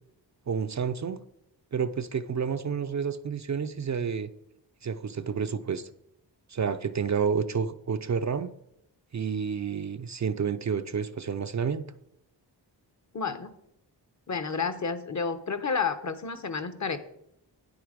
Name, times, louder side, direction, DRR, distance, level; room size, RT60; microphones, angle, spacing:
voice 1, 0.5-1.2 1.7-4.3 4.8-5.9 6.5-8.5 9.1-11.8, right 6 dB, 40° right, 9 dB, 0.5 m, -30 dB
voice 2, 13.1-13.5 14.3-17.0, left 5 dB, 40° left, 11 dB, 1.0 m, -30 dB
9.7 x 7.9 x 5.0 m, 0.79 s
wide cardioid pair, 105°, 43 cm